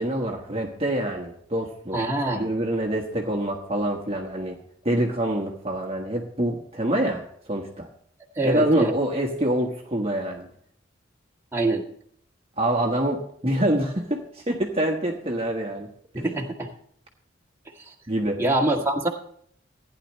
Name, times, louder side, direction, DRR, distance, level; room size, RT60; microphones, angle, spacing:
voice 1, 0.0-2.0 2.3-4.6 4.8-7.2 7.5-7.9 8.4-10.5 12.6-15.9 16.1-16.2 18.1-18.4, right 1 dB, 30° right, 0 dB, 1.4 m, -26 dB
voice 2, 1.9-2.5 8.4-8.9 11.5-11.8 16.1-16.7 17.9-18.0 18.4-19.1, right 2 dB, 15° right, -1 dB, 1.8 m, -24 dB
15.5 x 10.0 x 3.2 m, 0.63 s
head